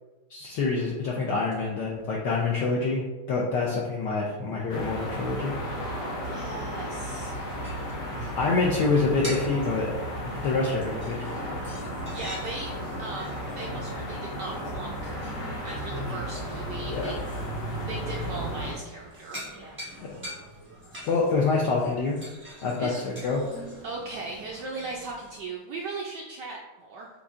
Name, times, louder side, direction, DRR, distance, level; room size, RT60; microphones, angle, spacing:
voice 1, 0.3-5.5 8.3-9.9 10.2-11.4 16.9-17.1 20.0-20.2 21.1-22.2 22.6-23.4, left 3 dB, 75° left, -3 dB, 1.0 m, -26 dB
sound 1, 4.7-18.7, equal, 60° left, 1.4 m, -34 dB
voice 2, 6.2-7.3 12.1-12.7 13.0-15.2 15.6-17.2 17.8-19.4 22.8-23.1 23.8-27.1, right 3 dB, 85° right, -2 dB, 0.9 m, -38 dB
sound 2, 7.3-25.4, equal, 20° right, 0.3 m, -45 dB
6.8 x 2.6 x 2.4 m, 1.2 s
omnidirectional pair, 2.4 m